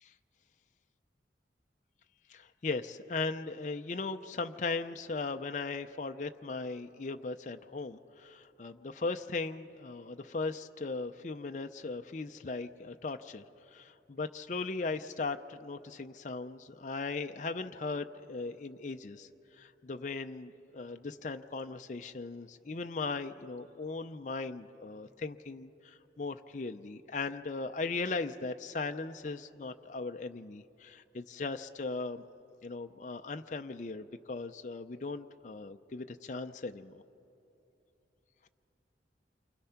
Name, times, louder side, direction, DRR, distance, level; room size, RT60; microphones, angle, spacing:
voice 1, 2.3-13.4 13.7-19.3 19.5-32.2 32.6-37.0, left 3 dB, 40° left, 7 dB, 0.5 m, -38 dB
28.0 x 24.0 x 5.8 m, 2.9 s
head